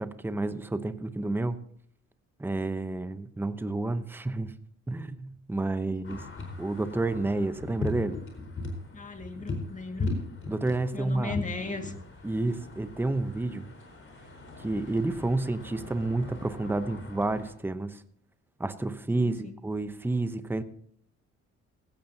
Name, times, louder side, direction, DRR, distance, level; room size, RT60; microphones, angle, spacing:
voice 1, 0.0-1.6 2.4-4.5 4.9-6.2 6.6-8.2 10.5-11.4 12.2-13.7 14.6-18.0 18.6-20.6, right 2 dB, 5° right, 11 dB, 0.8 m, -30 dB
sound 1, 6.0-17.5, left 2 dB, 45° left, 4.3 m, -39 dB
voice 2, 8.9-10.2 10.9-11.9 19.2-19.5, left 3 dB, 25° left, 5 dB, 2.0 m, -37 dB
16.0 x 15.5 x 2.8 m, 0.64 s
cardioid pair, 90°, 30 cm